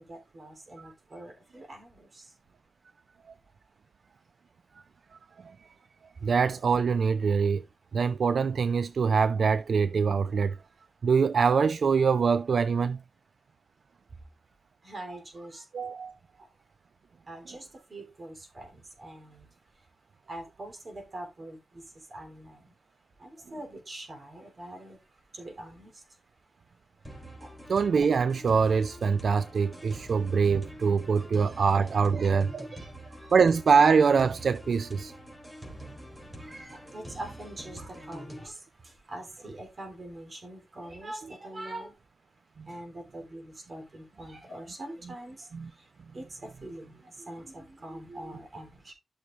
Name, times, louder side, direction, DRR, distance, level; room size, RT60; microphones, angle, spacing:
voice 1, 0.0-2.3 14.8-15.7 16.4-16.5 17.3-19.5 20.3-22.7 23.2-25.0 25.3-26.0 27.4-27.5 31.1-31.8 32.1-32.3 32.7-33.4 35.6-35.8 36.1-42.0 42.6-48.9, right 1 dB, 35° right, 3.4 m, -44 dB
voice 2, 6.2-7.6 7.9-10.6 11.0-13.0 15.7-16.1 27.7-32.7 33.3-35.1 42.6-42.7 45.5-45.7, right 5 dB, 60° right, 0.4 m, -24 dB
sound 1, 27.0-38.5, equal, 10° right, 3.0 m, -45 dB
12.5 x 6.3 x 2.5 m
wide cardioid pair, 165°, 0 cm